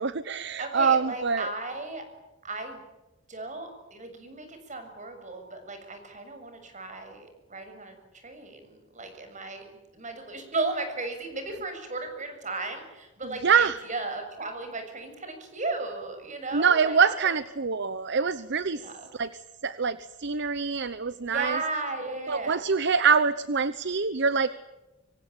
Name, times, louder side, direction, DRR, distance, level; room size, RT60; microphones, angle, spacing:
voice 1, 0.0-1.5 13.2-13.8 16.5-18.8 19.1-19.3 19.6-21.6 22.3-24.5, right 6 dB, 60° right, 15 dB, 0.9 m, -25 dB
voice 2, 0.6-2.0 2.4-2.8 3.3-9.6 9.9-17.1 18.8-19.1 21.2-22.6, right 3 dB, 40° right, 7 dB, 7.0 m, -35 dB
25.5 x 25.0 x 8.8 m, 1.0 s
head